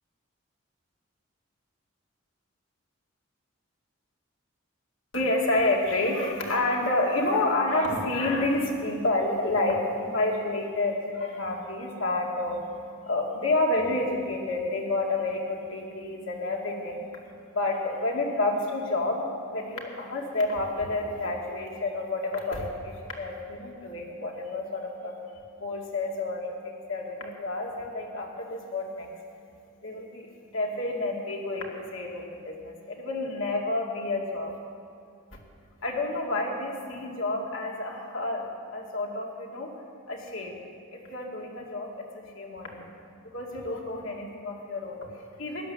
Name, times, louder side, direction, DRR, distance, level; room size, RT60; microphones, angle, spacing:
voice 1, 5.1-29.1 29.8-34.6 35.3-35.4 35.8-40.6 40.9-42.9 43.2-45.7, left 2 dB, 70° left, -1 dB, 2.3 m, -29 dB
16.0 x 11.5 x 7.0 m, 2.3 s
head